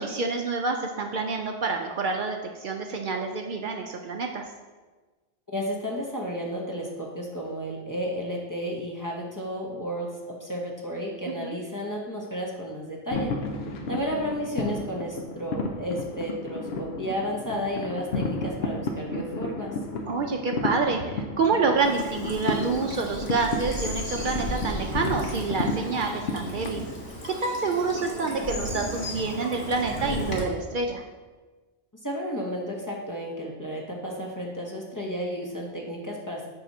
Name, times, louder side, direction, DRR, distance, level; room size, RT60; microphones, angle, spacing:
voice 1, 0.0-4.5 11.3-11.6 20.1-26.8 27.2-31.0, right 4 dB, 60° right, 3 dB, 0.6 m, -28 dB
voice 2, 5.5-13.3 13.9-19.8 32.0-36.4, equal, 20° left, -2 dB, 0.8 m, -32 dB
sound 1, 13.1-26.9, left 3 dB, 85° left, 0.8 m, -32 dB
Bird vocalization bird call bird song / Stream, 21.8-30.4, equal, 55° left, 1.4 m, -35 dB
7.4 x 2.8 x 5.4 m, 1.3 s
omnidirectional pair, 1.0 m